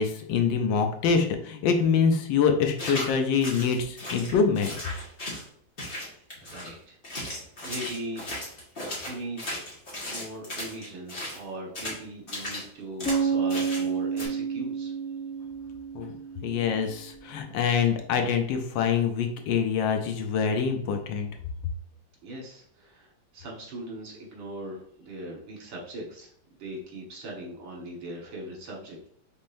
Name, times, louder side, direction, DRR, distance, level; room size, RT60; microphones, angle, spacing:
voice 1, 0.0-4.7 15.9-16.1 16.4-21.3, left 6 dB, 80° left, 5 dB, 1.4 m, -25 dB
sound 1, 2.8-3.1 3.4-5.5 5.8-6.7 7.0-11.4 11.7-12.0 12.3-12.6 13.0-13.2 13.5-13.9 14.2-14.3, left 1 dB, 30° left, 1.6 m, -36 dB
voice 2, 6.4-8.2 9.0-9.6 10.1-14.9 22.2-26.3 26.6-29.1, right 1 dB, 80° right, -2 dB, 2.2 m, -40 dB
sound 2, 13.1-17.0, right 5 dB, 10° left, 0.5 m, -30 dB
5.2 x 3.7 x 2.6 m, 0.64 s
omnidirectional pair, 2.1 m